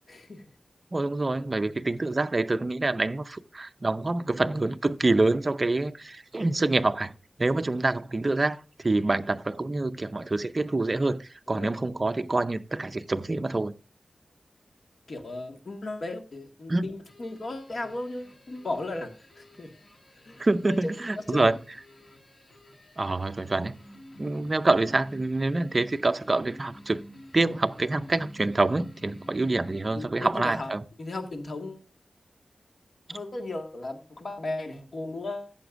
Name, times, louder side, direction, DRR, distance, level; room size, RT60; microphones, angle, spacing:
voice 1, 0.1-0.4 4.4-4.6 11.5-11.7 15.1-19.7 20.3-21.5 29.9-30.7 31.0-31.9 33.1-35.5, left 2 dB, 60° left, 1.8 m, -36 dB
voice 2, 0.9-7.1 7.4-13.7 16.7-16.9 20.4-21.6 23.0-23.8 24.2-27.0 27.3-30.8, right 2 dB, 35° right, 0.5 m, -26 dB
sound 1, 17.1-30.2, left 1 dB, 30° left, 2.2 m, -51 dB
13.5 x 6.9 x 2.5 m
wide cardioid pair, 105°, 0 cm